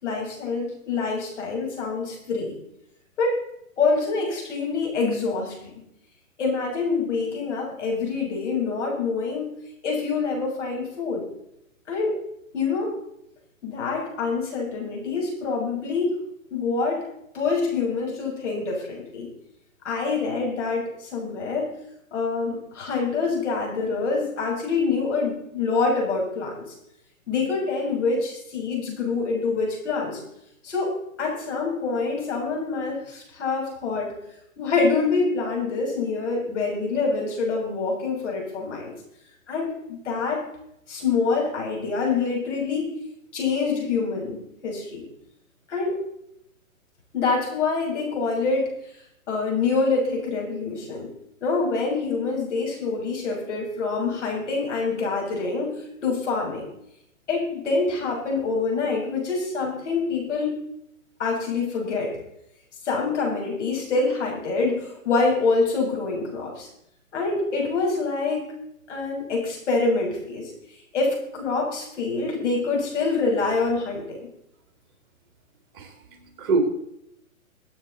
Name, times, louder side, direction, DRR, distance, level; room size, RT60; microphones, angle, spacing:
voice 1, 0.0-2.5 3.2-3.4 3.8-5.7 6.4-9.5 9.8-11.2 11.9-12.2 12.5-12.9 13.6-16.2 16.5-17.0 17.3-19.3 19.8-21.7 22.1-26.7 27.3-30.2 30.6-30.9 31.2-34.1 34.6-38.9 39.5-40.4 40.9-42.9 43.3-45.0 45.7-46.0 47.1-48.7 49.3-51.1 51.4-55.7 56.0-56.6 57.3-60.6 61.2-62.1 62.8-66.7 67.1-68.5 68.9-70.5 70.9-74.3, left 4 dB, 60° left, -1 dB, 6.6 m, -26 dB
voice 2, 75.7-76.6, right 4 dB, 40° right, 5 dB, 2.9 m, -27 dB
23.5 x 8.7 x 4.1 m, 0.78 s
hypercardioid pair, 145°, 41 cm